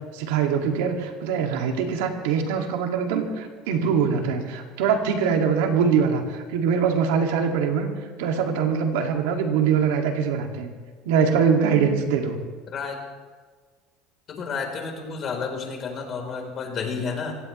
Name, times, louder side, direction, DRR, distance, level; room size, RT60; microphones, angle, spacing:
voice 1, 0.0-7.9 8.2-10.7 11.1-12.4, right 6 dB, 90° right, 3 dB, 2.2 m, -23 dB
voice 2, 12.7-13.0 14.3-17.3, left 5 dB, 40° left, 2 dB, 3.8 m, -31 dB
25.0 x 17.0 x 3.2 m, 1.4 s
cardioid pair, 135°, 0 cm